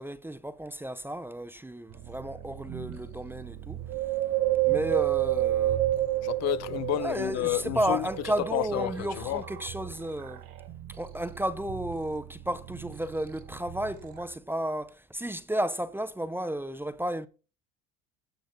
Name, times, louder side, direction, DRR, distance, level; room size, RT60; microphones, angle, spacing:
voice 1, 0.0-3.8 4.6-5.8 7.0-10.4 10.9-17.3, right 1 dB, 5° right, 0.5 m, -33 dB
sound 1, 1.9-14.4, right 11 dB, 65° right, 2.1 m, -43 dB
Wind, 3.9-7.5 8.0-9.2 9.8-9.9, right 15 dB, 45° right, 0.8 m, -28 dB
voice 2, 6.2-8.1 8.5-9.4, left 17 dB, 50° left, 0.5 m, -30 dB
17.0 x 5.8 x 3.8 m
cardioid pair, 125°, 36 cm